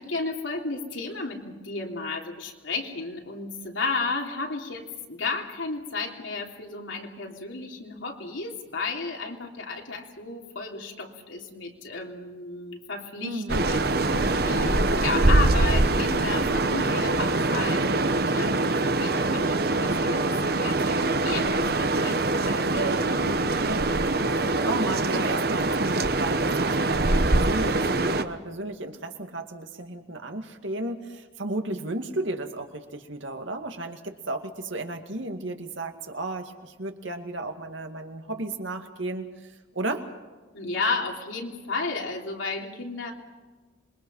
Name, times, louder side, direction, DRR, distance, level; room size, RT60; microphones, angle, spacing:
voice 1, 0.0-23.4 40.5-43.1, left 3 dB, 80° left, 1 dB, 3.3 m, -33 dB
voice 2, 13.2-13.6 22.4-22.8 23.6-24.0 24.3-39.3 39.7-40.0, right 2 dB, 75° right, 5 dB, 2.3 m, -33 dB
sound 1, 13.5-28.2, right 2 dB, 50° right, 1.1 m, -24 dB
27.0 x 23.0 x 5.7 m, 1.3 s
head